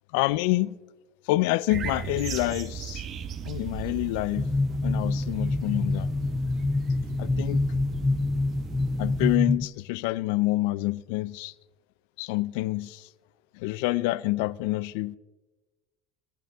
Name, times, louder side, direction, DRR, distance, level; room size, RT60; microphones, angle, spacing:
voice 1, 0.1-0.7 1.3-3.0 3.4-4.5 4.8-6.1 7.2-7.6 9.0-11.5 12.2-13.1 13.6-15.2, left 19 dB, 80° left, 0.4 m, -27 dB
sound 1, 1.7-9.4, right 7 dB, 50° right, 1.1 m, -37 dB
sound 2, 4.4-9.7, left 2 dB, 10° left, 0.4 m, -26 dB
25.0 x 10.0 x 3.5 m
supercardioid pair, 100°, 0 cm